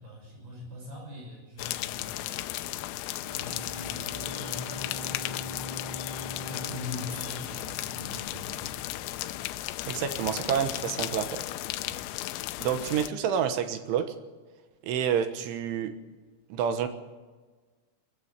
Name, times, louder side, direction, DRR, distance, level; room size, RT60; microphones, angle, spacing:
voice 1, 0.0-2.9 3.2-5.6 6.4-8.8 11.8-12.0, left 1 dB, 50° right, -1 dB, 8.0 m, -43 dB
sound 1, 1.6-13.1, left 15 dB, 90° left, 3.4 m, -35 dB
Bowed string instrument, 3.1-9.1, left 1 dB, 5° right, 5.6 m, -43 dB
voice 2, 9.9-11.4 12.6-14.2 14.8-15.9 16.5-16.9, right 8 dB, 75° right, 9 dB, 3.5 m, -28 dB
20.5 x 15.0 x 8.8 m, 1.3 s
omnidirectional pair, 5.8 m